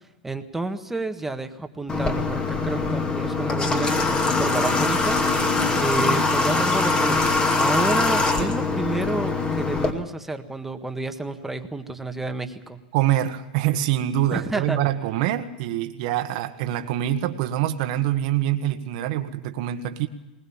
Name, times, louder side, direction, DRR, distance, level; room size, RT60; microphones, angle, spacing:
voice 1, 0.2-12.8 14.3-14.9, right 2 dB, 5° right, 6 dB, 1.6 m, -30 dB
Water / Water tap faucet, 1.9-9.9, left 3 dB, 20° left, 2.4 m, -22 dB
voice 2, 12.9-20.1, right 12 dB, 55° right, 7 dB, 1.5 m, -25 dB
21.0 x 20.0 x 7.3 m, 1.0 s
hypercardioid pair, 125°, 5 cm